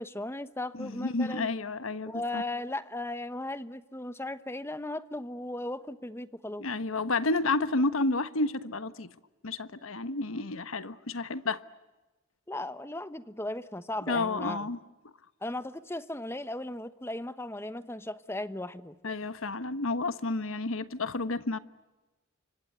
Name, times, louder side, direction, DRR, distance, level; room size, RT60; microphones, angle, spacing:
voice 1, 0.0-1.5 2.1-6.7 12.5-14.7 15.4-19.0, left 1 dB, 10° left, 1.0 m, -36 dB
voice 2, 0.7-2.4 6.6-9.1 9.4-11.6 14.1-14.8 19.0-21.6, left 3 dB, 75° left, 1.3 m, -30 dB
29.5 x 25.5 x 8.0 m
head